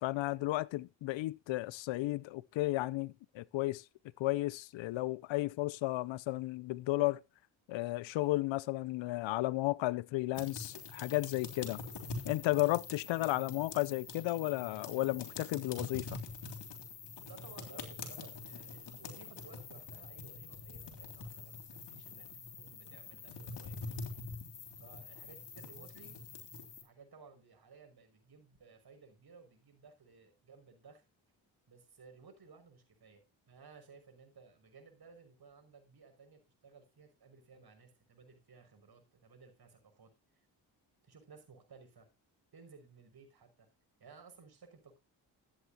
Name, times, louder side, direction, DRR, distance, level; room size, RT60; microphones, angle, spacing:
voice 1, 0.0-3.8 4.2-7.2 7.7-11.8 12.3-16.2, left 18 dB, 80° left, 0.6 m, -33 dB
sound 1, 10.3-26.8, left 4 dB, 65° left, 3.6 m, -45 dB
voice 2, 17.2-21.6 21.9-22.3 22.6-24.0 24.8-26.2 26.8-31.0 31.7-40.1 41.0-42.1 42.5-43.7 44.0-45.0, right 5 dB, 55° right, 5.9 m, -58 dB
14.0 x 10.0 x 2.8 m
cardioid pair, 60°, 45 cm